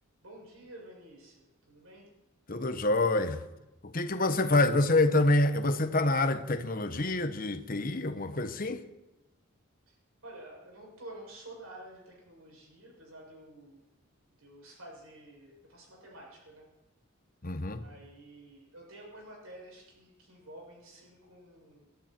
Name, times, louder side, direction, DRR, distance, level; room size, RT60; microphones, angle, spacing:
voice 1, 0.2-2.1 9.9-10.0 10.2-13.8 14.4-16.7 17.8-21.9, right 1 dB, 80° right, 7.3 m, -50 dB
voice 2, 2.5-3.4 3.8-8.8 17.4-17.8, left 2 dB, 40° left, 1.1 m, -27 dB
22.5 x 13.0 x 4.5 m
head